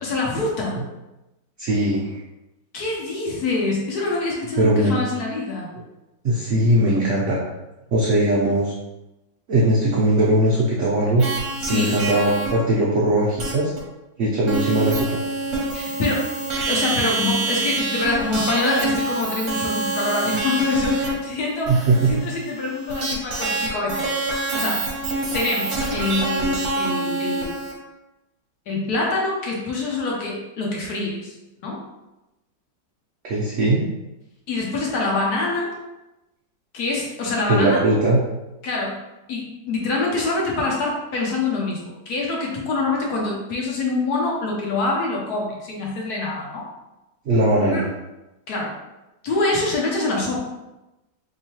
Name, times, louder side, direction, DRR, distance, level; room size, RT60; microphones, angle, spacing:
voice 1, 0.0-0.8 2.7-5.7 11.6-12.0 15.7-24.1 24.5-24.9 25.3-27.6 28.7-31.8 34.5-35.8 36.7-37.8 38.6-39.0 39.3-46.6 47.7-47.9 48.5-48.7 49.2-50.4, left 3 dB, 65° left, -2 dB, 1.1 m, -25 dB
voice 2, 1.6-2.2 4.6-5.0 6.2-7.4 7.9-8.7 9.5-11.3 11.7-13.7 14.2-15.2 21.7-22.1 33.2-33.8 37.4-38.2 47.3-47.8, right 1 dB, 90° right, -5 dB, 0.6 m, -19 dB
sound 1, 11.2-12.5 13.4-13.5 13.8-13.9 14.5-27.7, right 2 dB, 55° right, 0.9 m, -26 dB
3.6 x 3.1 x 2.8 m, 0.99 s
omnidirectional pair, 2.0 m